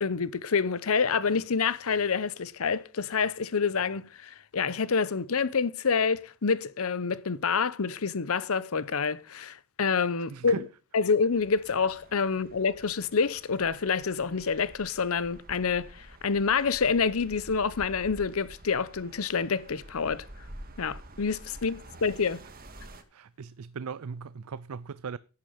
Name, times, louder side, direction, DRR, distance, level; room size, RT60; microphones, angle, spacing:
voice 1, 0.0-10.6 10.9-20.3 20.8-22.4, left 5 dB, 75° left, 0.7 m, -27 dB
voice 2, 10.3-10.7 23.1-25.2, right 6 dB, 85° right, 0.5 m, -38 dB
sound 1, 11.3-23.0, right 1 dB, 45° right, 1.8 m, -49 dB
11.0 x 8.8 x 5.2 m
head